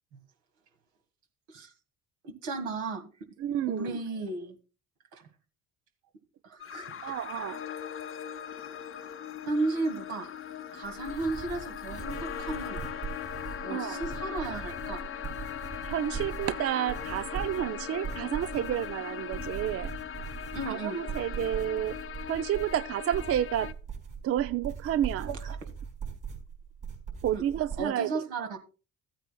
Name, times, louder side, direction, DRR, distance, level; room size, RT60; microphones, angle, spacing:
voice 1, 2.2-3.1 3.7-4.6 5.1-5.2 6.4-7.0 9.4-10.3 10.7-12.8 13.6-15.1 20.5-21.0 25.3-25.7 27.3-27.4 27.8-28.6, right 3 dB, 70° right, 2.0 m, -34 dB
voice 2, 3.4-4.0 7.0-7.6 13.7-14.0 15.8-19.9 20.7-22.0 22.3-23.7 24.2-25.3 27.2-28.2, right 11 dB, 40° right, 0.5 m, -30 dB
sound 1, 6.6-23.7, left 9 dB, 35° left, 0.8 m, -40 dB
sound 2, 10.8-27.8, right 6 dB, 55° right, 4.6 m, -40 dB
Trumpet, 12.0-19.6, left 17 dB, 80° left, 0.6 m, -45 dB
15.0 x 8.9 x 2.3 m
hypercardioid pair, 55°, 38 cm